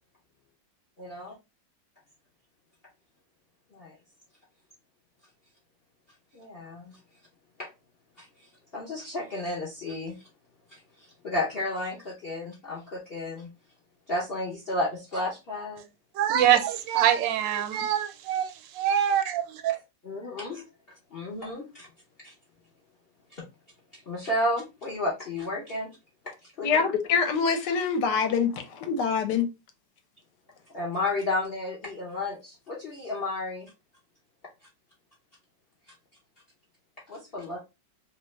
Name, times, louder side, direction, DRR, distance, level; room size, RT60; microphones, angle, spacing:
voice 1, 1.0-1.3 3.7-4.0 6.3-7.0 7.6-7.7 8.2-8.3 8.7-10.3 10.7-13.5 14.1-15.8 19.7-19.8 20.0-20.6 21.1-21.9 22.2-22.3 23.3-23.5 24.1-25.9 26.2-26.8 30.7-33.7 37.1-37.6, left 2 dB, 55° left, 0.6 m, -32 dB
voice 2, 16.1-19.8, right 10 dB, 85° right, 1.3 m, -24 dB
voice 3, 26.6-28.5 28.8-29.5, left 6 dB, 75° left, 1.2 m, -24 dB
2.9 x 2.3 x 3.0 m
omnidirectional pair, 2.0 m